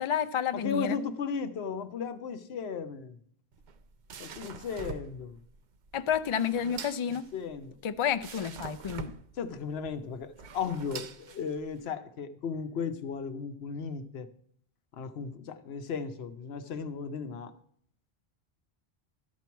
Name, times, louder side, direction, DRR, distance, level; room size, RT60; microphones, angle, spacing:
voice 1, 0.0-1.0 5.9-7.2 7.8-9.1, left 8 dB, 55° left, 0.3 m, -30 dB
voice 2, 0.5-3.2 4.2-5.4 7.3-7.8 9.4-14.3 14.9-17.5, left 6 dB, 75° left, 1.0 m, -35 dB
sound 1, 3.5-11.9, right 5 dB, 55° right, 0.6 m, -45 dB
12.5 x 4.5 x 7.0 m
omnidirectional pair, 1.1 m